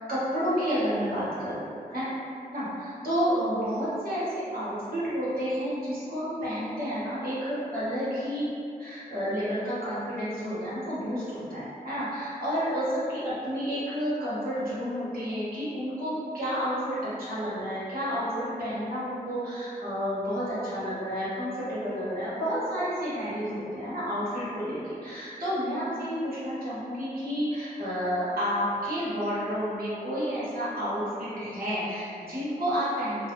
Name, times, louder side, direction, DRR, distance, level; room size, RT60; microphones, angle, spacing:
voice 1, 0.1-2.1 2.5-8.4 8.8-33.3, equal, 75° right, -11 dB, 1.1 m, -30 dB
2.3 x 2.2 x 2.9 m, 2.5 s
wide cardioid pair, 70°, 15 cm